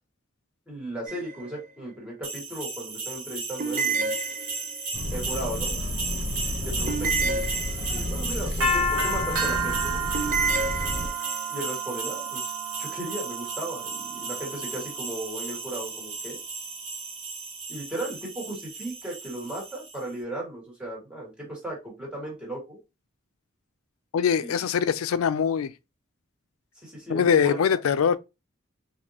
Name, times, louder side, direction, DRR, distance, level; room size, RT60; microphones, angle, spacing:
voice 1, 0.7-4.1 5.1-5.8 6.6-7.6 7.9-10.0 11.5-16.4 17.7-22.8 24.4-24.5 26.8-27.6, right 1 dB, 5° right, 1.7 m, -36 dB
sound 1, 1.1-1.6 3.6-4.9 6.9-8.2 10.1-11.4, right 4 dB, 40° right, 0.5 m, -29 dB
sound 2, 2.2-19.9, right 3 dB, 90° right, 1.3 m, -32 dB
sound 3, 4.9-11.1, left 1 dB, 55° left, 0.8 m, -32 dB
voice 2, 24.1-25.7 27.1-28.2, left 7 dB, 90° left, 0.4 m, -23 dB
4.0 x 2.6 x 2.8 m
head